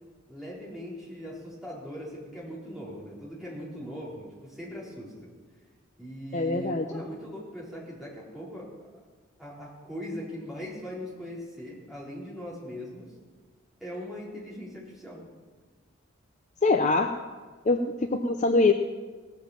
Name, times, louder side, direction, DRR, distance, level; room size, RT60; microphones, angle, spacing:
voice 1, 0.3-5.1 6.0-8.7 9.4-13.1 13.8-15.2, equal, ahead, -7 dB, 4.1 m, -40 dB
voice 2, 6.3-6.8 16.6-17.1 17.7-17.8 18.1-18.7, left 3 dB, 35° left, 6 dB, 0.6 m, -22 dB
18.0 x 7.3 x 7.3 m, 1.4 s
head